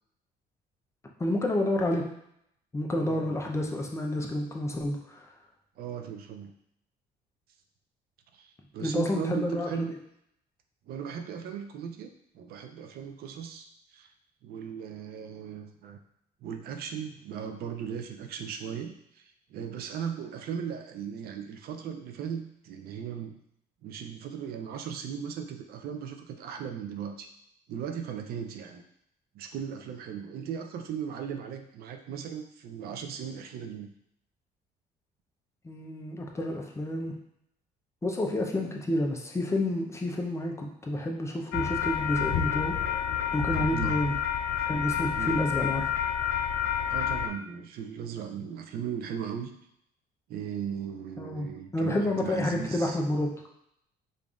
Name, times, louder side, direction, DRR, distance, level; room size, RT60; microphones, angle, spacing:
voice 1, 1.2-2.0 2.7-5.3 8.8-9.9 35.6-37.1 38.0-42.8 43.3-44.1 44.7-45.9 51.2-53.3, left 1 dB, 15° left, 0 dB, 0.6 m, -29 dB
voice 2, 3.0-3.4 5.8-6.5 8.3-9.9 10.9-14.1 14.4-16.0 16.4-23.4 23.8-27.3 27.7-28.8 29.3-33.9 43.7-44.0 45.1-45.4 46.9-49.6 50.3-53.0, right 8 dB, 65° right, 6 dB, 0.4 m, -37 dB
sound 1, 41.5-47.3, left 9 dB, 85° left, 0.4 m, -29 dB
5.1 x 2.5 x 2.4 m, 0.74 s
cardioid pair, 110°, 17 cm